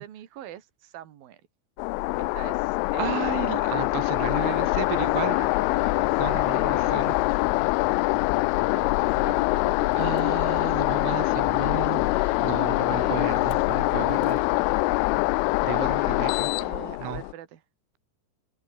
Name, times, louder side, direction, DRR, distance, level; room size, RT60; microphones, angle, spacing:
voice 1, 0.0-1.4 2.3-3.5 4.8-7.0 8.7-10.0 12.9-13.4 16.6-17.6, right 12 dB, 55° right, 3.5 m, -43 dB
sound 1, 1.8-17.3, left 25 dB, 90° left, 3.1 m, -24 dB
voice 2, 3.0-5.4 6.2-7.1 10.0-14.4 15.6-16.5 17.0-17.2, right 16 dB, 80° right, 3.3 m, -33 dB
sound 2, 4.3-14.6, left 4 dB, 25° left, 3.6 m, -44 dB
Motor vehicle (road), 4.7-11.1 13.3-13.7 14.1-14.5, left 12 dB, 70° left, 2.1 m, -50 dB
omnidirectional pair, 5.5 m